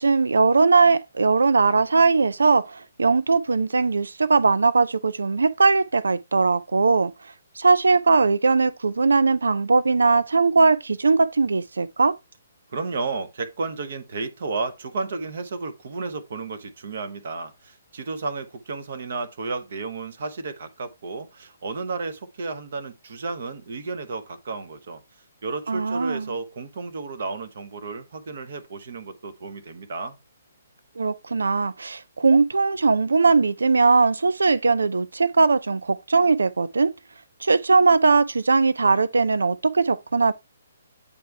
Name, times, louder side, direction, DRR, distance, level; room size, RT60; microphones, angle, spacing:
voice 1, 0.0-7.1 7.6-12.2 25.7-26.3 31.0-36.9 37.4-40.3, right 4 dB, 65° right, 0.4 m, -20 dB
voice 2, 12.7-25.0 25.4-30.2, right 4 dB, 50° right, 1.0 m, -32 dB
8.4 x 3.4 x 3.3 m
figure-of-eight pair, 130°, 0 cm